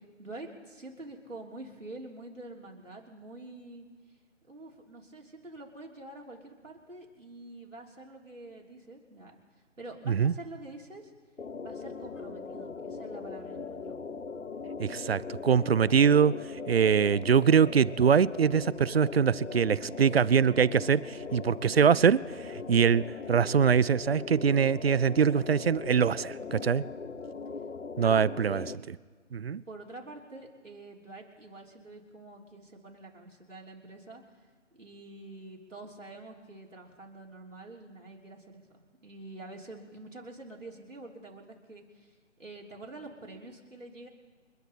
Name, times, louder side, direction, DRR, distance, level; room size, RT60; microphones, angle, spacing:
voice 1, 0.0-3.9 4.5-9.4 9.8-11.1 11.6-14.0 28.0-28.8 29.7-34.2 34.7-38.6 39.0-44.1, right 2 dB, 90° right, -2 dB, 3.4 m, -46 dB
sound 1, 11.4-28.8, left 5 dB, 90° left, 0.8 m, -40 dB
voice 2, 14.8-16.4 16.7-26.8 28.0-28.6 29.3-29.6, right 7 dB, 55° right, 22 dB, 0.4 m, -23 dB
29.5 x 10.5 x 4.1 m, 1.5 s
figure-of-eight pair, 150°, 37 cm